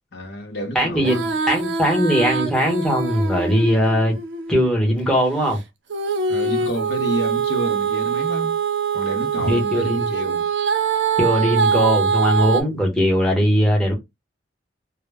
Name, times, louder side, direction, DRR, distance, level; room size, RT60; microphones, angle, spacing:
voice 1, 0.1-1.2 6.3-8.6 8.9-10.5, equal, 65° left, 0.7 m, -29 dB
voice 2, 0.7-4.1 4.5-5.6 9.3-10.1 11.2-13.9, equal, 5° left, 0.9 m, -20 dB
Female singing, 0.9-4.7 5.9-12.6, right 6 dB, 70° right, 0.5 m, -23 dB
2.1 x 2.0 x 3.2 m
head